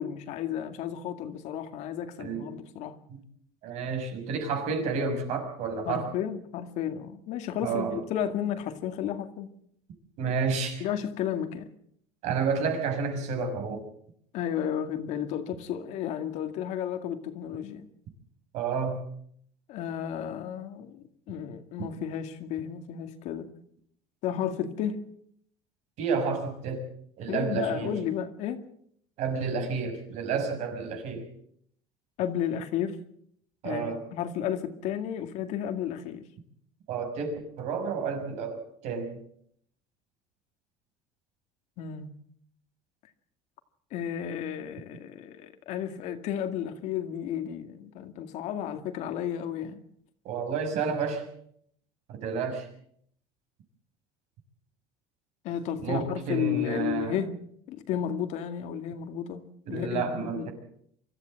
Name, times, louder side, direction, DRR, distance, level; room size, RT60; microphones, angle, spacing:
voice 1, 0.0-3.0 5.9-9.5 10.8-11.7 14.3-17.9 19.7-23.5 24.2-25.0 27.3-28.6 32.2-33.0 33.6-36.2 41.8-42.1 43.9-49.8 55.4-57.3 57.7-59.4 59.7-60.5, left 9 dB, 60° left, 2.1 m, -33 dB
voice 2, 2.2-2.5 3.1-3.2 3.6-6.1 7.6-8.0 10.2-10.9 12.2-13.8 18.5-19.0 26.0-26.8 27.2-28.0 29.2-31.3 33.6-34.0 36.9-39.2 50.2-51.3 52.1-52.7 55.8-57.2 59.7-60.5, right 5 dB, 55° right, 6.1 m, -30 dB
24.5 x 14.0 x 7.7 m
cardioid pair, 150°, 13 cm